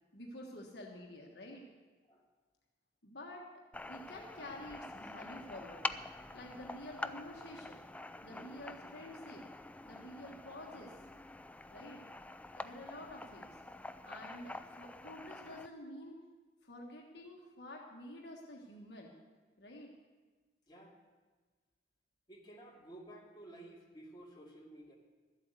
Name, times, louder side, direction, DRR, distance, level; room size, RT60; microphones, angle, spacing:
voice 1, 0.1-1.6 3.0-3.5 3.9-5.8 6.3-7.8 8.2-9.5 9.8-11.0 11.7-12.1 12.5-13.6 14.0-16.2 16.6-19.1 19.6-19.9, left 1 dB, 65° left, 0 dB, 1.4 m, -49 dB
sound 1, 3.7-15.7, left 2 dB, 10° left, 0.3 m, -46 dB
voice 2, 20.7-21.0 22.3-24.9, right 1 dB, 25° left, -3 dB, 2.5 m, -53 dB
13.0 x 8.1 x 8.1 m, 1.4 s
head